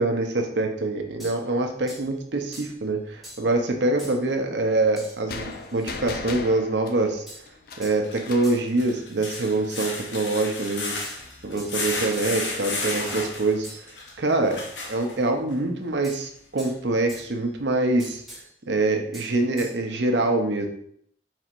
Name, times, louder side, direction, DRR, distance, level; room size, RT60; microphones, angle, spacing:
voice 1, 0.0-7.2 7.8-10.9 11.4-13.7 14.2-14.6 14.9-18.2 18.7-20.7, right 2 dB, 75° right, 4 dB, 0.7 m, -25 dB
sound 1, 1.2-1.4 1.9-2.1 2.5-2.8 3.2-3.5 4.0-4.2 5.0-5.2 5.5-6.0 7.3-7.5 7.8-8.0 8.4-8.7 9.3-10.0 11.0-11.8 12.1-12.4 13.1-13.3 13.6-14.0 16.0-16.8 17.1-17.4 18.0-18.5 19.1-19.8, equal, ahead, 1.2 m, -44 dB
sound 2, 5.3-8.6, left 4 dB, 60° left, 0.4 m, -37 dB
sound 3, 8.0-15.5 16.1-16.2 16.7-16.8, left 3 dB, 90° left, 0.8 m, -33 dB
4.4 x 4.1 x 2.5 m, 0.65 s
head